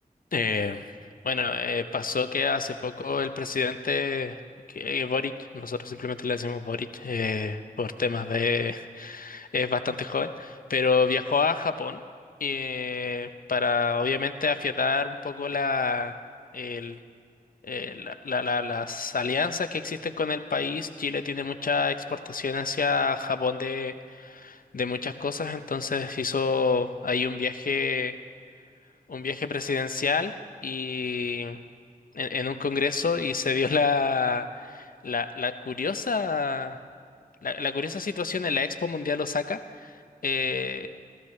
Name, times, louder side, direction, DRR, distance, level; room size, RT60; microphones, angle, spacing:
voice 1, 0.3-0.8 1.2-4.4 4.7-12.0 12.4-16.2 16.5-17.0 17.6-28.1 29.1-30.3 30.6-31.6 32.1-36.8 37.4-40.0 40.2-40.9, left 4 dB, 65° left, 10 dB, 0.7 m, -28 dB
20.5 x 15.0 x 3.2 m, 2.2 s
wide cardioid pair, 50°, 15 cm